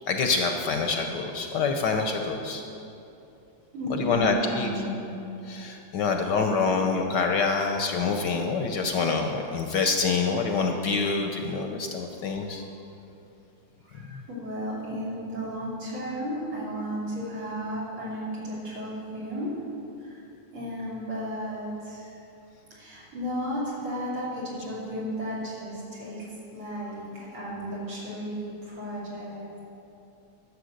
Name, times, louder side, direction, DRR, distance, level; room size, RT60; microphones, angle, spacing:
voice 1, 0.1-2.6 4.0-4.7 5.5-12.6 14.1-14.2, left 4 dB, 65° left, 4 dB, 1.2 m, -26 dB
voice 2, 3.7-5.1 12.6-12.7 13.8-19.5 20.0-20.2 20.5-22.1 22.7-26.3 26.5-29.5, equal, 75° right, -8 dB, 4.1 m, -34 dB
11.5 x 7.5 x 6.5 m, 2.7 s
omnidirectional pair, 2.3 m